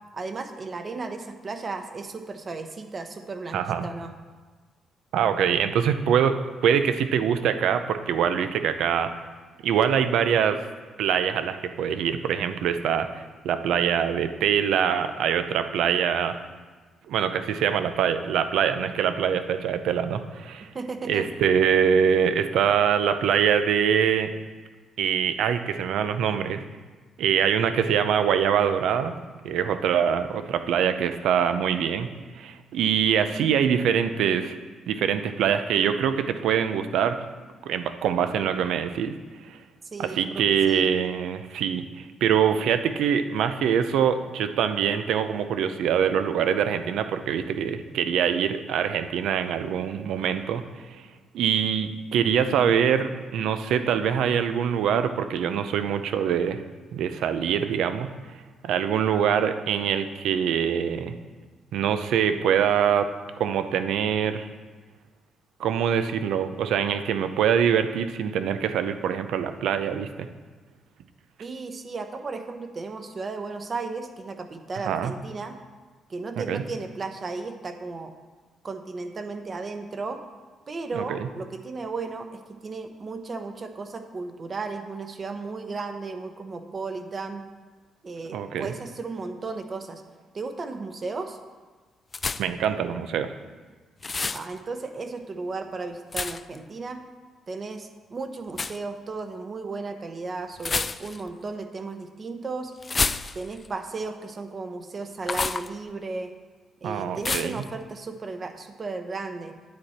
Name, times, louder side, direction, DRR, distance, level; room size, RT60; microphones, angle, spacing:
voice 1, 0.1-4.1 20.7-21.3 39.9-40.8 71.4-75.5 76.1-78.1 78.6-80.2 80.7-87.4 88.0-90.0 90.3-91.4 94.3-97.0 97.5-102.7 103.3-106.3 106.8-109.5, right 3 dB, 40° right, 7 dB, 1.0 m, -35 dB
voice 2, 3.5-3.9 5.1-6.4 6.6-9.1 9.6-10.6 11.0-16.4 17.1-20.7 21.1-24.3 25.0-26.6 27.2-29.2 29.4-32.1 32.4-34.6 34.9-37.2 37.6-39.1 39.5-39.6 40.0-51.0 51.3-56.6 56.9-58.1 58.6-61.1 61.7-63.1 63.4-64.5 65.6-70.3 74.9-75.1 76.4-76.6 80.9-81.3 88.3-88.7 92.4-93.3 106.8-107.6, right 8 dB, 80° right, 10 dB, 0.6 m, -24 dB
sound 1, 92.1-92.6 94.0-94.5 96.1-96.6 98.5-98.8 100.6-101.3 102.8-103.7 105.2-105.7 107.2-107.6, left 4 dB, 30° left, 0.4 m, -28 dB
9.6 x 7.8 x 4.3 m, 1.4 s
cardioid pair, 90°, 0 cm